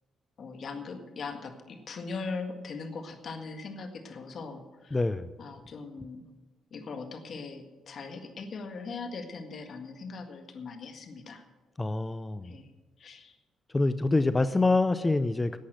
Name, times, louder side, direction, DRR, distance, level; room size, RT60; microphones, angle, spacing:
voice 1, 0.4-5.0 5.4-6.2 6.7-11.4 12.4-12.7 13.0-13.3 14.1-14.2 14.5-14.6, left 4 dB, 55° left, 6 dB, 1.7 m, -40 dB
voice 2, 4.9-5.3 11.8-12.5 13.7-15.6, left 2 dB, 20° left, 13 dB, 0.5 m, -26 dB
11.5 x 8.4 x 7.8 m, 1.2 s
cardioid pair, 90°, 0 cm